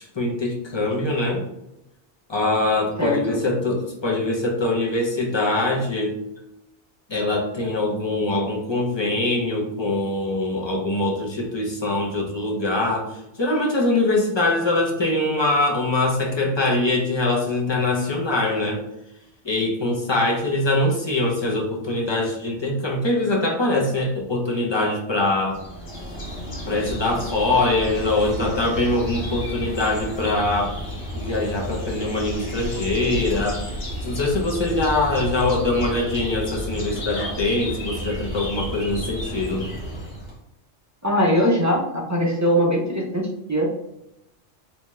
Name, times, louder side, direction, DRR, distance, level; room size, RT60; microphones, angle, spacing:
voice 1, 0.0-1.4 2.3-6.2 7.1-18.8 19.4-25.6 26.7-30.8 31.1-33.6 34.0-39.6, left 2 dB, 30° left, -1 dB, 0.5 m, -23 dB
voice 2, 3.0-3.4 41.0-43.7, equal, 25° right, -3 dB, 0.4 m, -21 dB
sound 1, 25.5-40.4, equal, 60° left, 1.2 m, -32 dB
3.4 x 2.8 x 3.1 m, 0.85 s
omnidirectional pair, 1.2 m